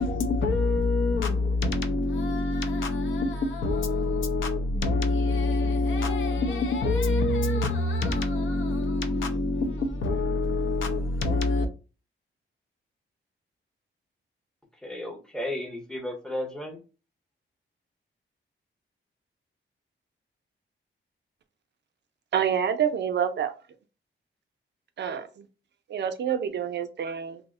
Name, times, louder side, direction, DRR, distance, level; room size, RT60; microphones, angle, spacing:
voice 1, 0.0-11.7, left 2 dB, 70° left, 0.6 m, -26 dB
voice 2, 14.8-16.8, left 1 dB, 5° left, 0.6 m, -34 dB
voice 3, 22.3-23.5 25.0-25.5 25.9-27.4, right 8 dB, 60° right, 0.4 m, -27 dB
2.7 x 2.0 x 3.5 m
wide cardioid pair, 165°, 21 cm